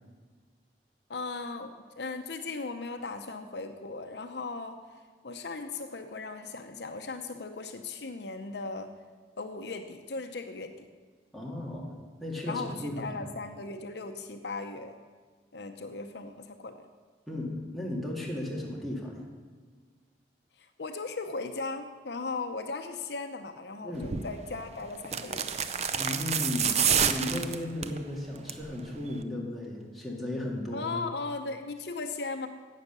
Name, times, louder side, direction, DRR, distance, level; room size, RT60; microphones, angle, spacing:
voice 1, 1.1-4.8 5.2-8.9 9.4-10.9 12.5-14.9 15.5-16.9 20.6-25.5 30.7-32.5, left 3 dB, 65° left, 6 dB, 0.8 m, -37 dB
voice 2, 11.3-13.2 17.3-19.2 23.8-24.1 26.0-26.8 27.1-30.9, left 1 dB, ahead, -4 dB, 2.1 m, -35 dB
sound 1, 24.0-24.3 25.0-28.0 28.4-28.7 29.0-29.1, right 7 dB, 35° right, 0.6 m, -28 dB
11.5 x 8.3 x 6.7 m, 1.5 s
head